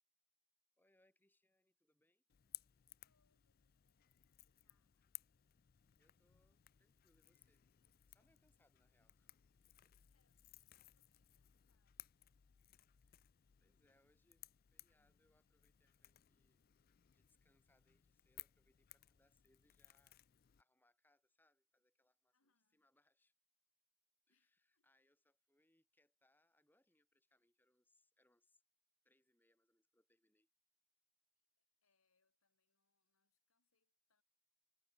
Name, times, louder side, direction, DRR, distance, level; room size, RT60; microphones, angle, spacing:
voice 1, 0.8-2.2 6.0-7.7 8.1-9.3 9.6-9.9 13.0-13.3 13.6-16.6 17.1-20.2 20.6-23.3 24.3-28.6 29.0-30.5, left 1 dB, 10° left, 2.2 m, -80 dB
Crackle / Crack, 2.3-20.6, left 17 dB, 45° left, 0.4 m, -61 dB
voice 2, 3.0-5.0 10.1-10.4 10.7-12.8 22.3-22.9 24.3-24.9 31.4-34.2, left 4 dB, 75° left, 3.8 m, -88 dB
head